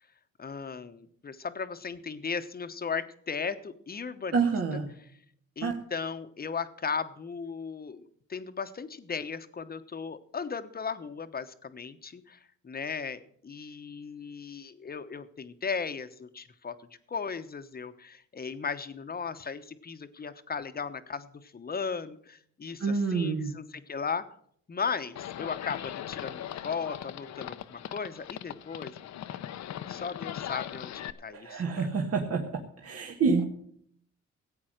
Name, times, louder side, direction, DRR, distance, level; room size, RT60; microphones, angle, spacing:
voice 1, 0.4-4.5 5.6-16.8 17.1-24.2 24.7-29.1 29.9-31.9, left 5 dB, 30° left, 10 dB, 1.0 m, -36 dB
voice 2, 4.3-4.9 5.6-5.7 22.8-23.5 31.3-32.4 32.8-33.4, right 4 dB, 50° right, 2 dB, 1.6 m, -27 dB
Livestock farm animals working animals, 25.2-31.1, left 11 dB, 65° left, 0.8 m, -39 dB
14.5 x 8.5 x 6.5 m, 0.65 s
cardioid pair, 90°, 30 cm